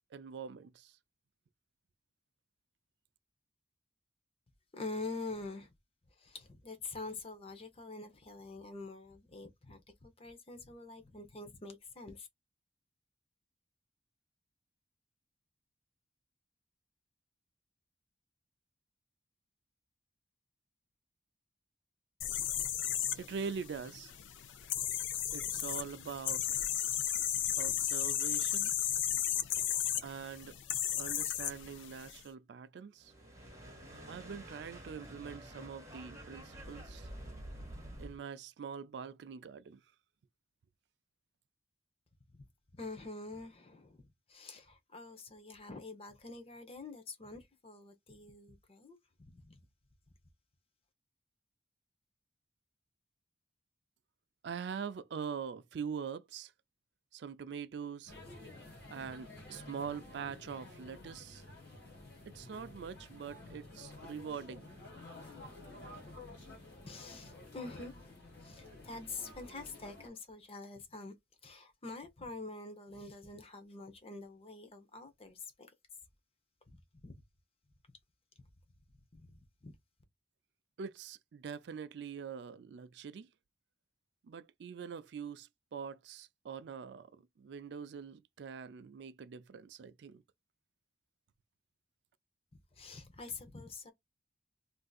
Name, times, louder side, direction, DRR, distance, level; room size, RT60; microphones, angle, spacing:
voice 1, 0.1-1.0 23.1-24.1 25.3-26.7 27.6-28.7 30.0-30.6 31.0-33.1 34.1-37.1 38.0-39.8 54.4-56.5 57.1-58.2 58.9-61.4 62.3-64.7 80.8-83.3 84.2-90.2, right 6 dB, 65° right, 0.3 m, -44 dB
voice 2, 4.7-5.7 6.2-12.3 42.7-49.6 66.9-71.1 71.4-75.7 76.7-77.1 78.4-78.5 79.1-79.8 92.5-93.9, left 3 dB, 30° left, 0.7 m, -46 dB
sound 1, 22.2-32.2, left 11 dB, 85° left, 0.5 m, -35 dB
sound 2, 33.0-38.2, right 1 dB, 15° right, 1.3 m, -49 dB
sound 3, 58.1-70.1, left 2 dB, 55° left, 1.5 m, -51 dB
3.5 x 2.6 x 2.3 m
head